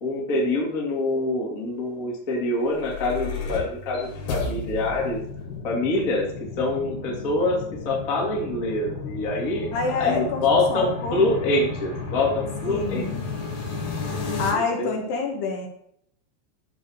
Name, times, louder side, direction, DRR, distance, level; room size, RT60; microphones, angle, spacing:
voice 1, 0.0-5.2 5.6-6.3 6.6-9.7 10.0-13.1 14.5-14.9, left 2 dB, 30° left, -2 dB, 1.6 m, -25 dB
sound 1, 2.5-14.5, left 4 dB, 90° left, 5.0 m, -33 dB
voice 2, 9.7-11.2 12.6-13.2 14.4-15.7, left 4 dB, 70° left, 2 dB, 3.2 m, -27 dB
13.5 x 4.9 x 6.4 m, 0.71 s
omnidirectional pair, 5.5 m